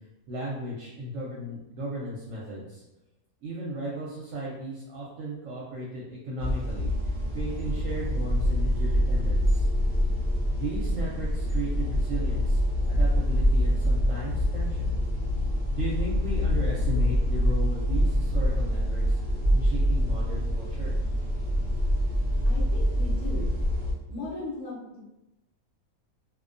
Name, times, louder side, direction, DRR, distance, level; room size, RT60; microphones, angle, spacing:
voice 1, 0.3-2.8 3.4-9.7 10.5-12.6 12.9-14.9 15.8-19.2 19.5-20.9, right 1 dB, 70° right, -5 dB, 0.9 m, -35 dB
sound 1, 6.4-23.9, equal, 50° right, 0.5 m, -25 dB
voice 2, 22.5-23.6 24.1-25.0, left 3 dB, 85° left, -5 dB, 1.1 m, -37 dB
2.4 x 2.1 x 2.5 m, 0.95 s
omnidirectional pair, 1.5 m